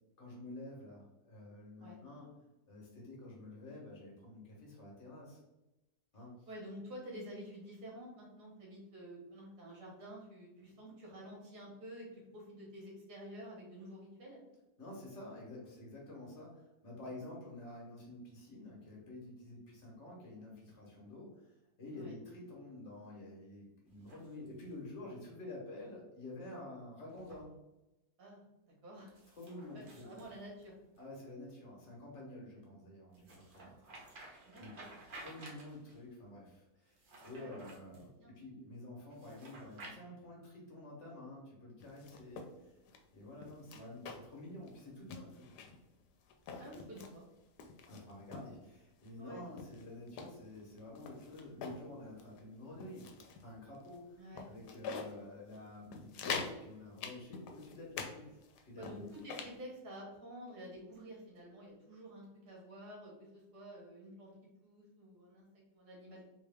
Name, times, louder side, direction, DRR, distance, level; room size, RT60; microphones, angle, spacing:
voice 1, 0.2-2.3 2.7-5.4 6.1-6.5 14.8-27.5 29.4-30.1 31.0-33.7 34.1-34.7 35.1-38.1 38.4-42.8 43.1-45.6 47.9-53.1 53.4-54.2 54.5-59.1, left 2 dB, 50° left, -2 dB, 1.3 m, -50 dB
voice 2, 6.5-14.4 17.0-17.1 21.9-22.2 28.2-29.1 29.7-30.7 34.5-35.0 37.4-37.7 38.1-38.3 43.7-43.9 46.6-47.2 49.2-49.4 54.2-54.5 58.8-64.3 64.6-66.3, equal, 75° right, -3 dB, 1.9 m, -50 dB
sound 1, 23.9-24.8 27.1-27.4 29.1-31.0 33.1-36.0 36.9-38.1 39.1-39.9, right 2 dB, 45° right, 0.8 m, -54 dB
sound 2, 41.8-42.5 42.9-43.0 43.4-44.4 44.7-44.8 45.1-45.8 46.3-47.1 47.6-48.5 49.0-49.1 49.6-51.8 52.2-52.4 52.8-53.4 53.9-54.0 54.3-55.1 55.5-55.6 55.9-56.6 57.0-58.1 58.4-59.6, left 5 dB, 90° left, 1.2 m, -44 dB
3.7 x 3.0 x 3.4 m, 0.98 s
omnidirectional pair, 1.7 m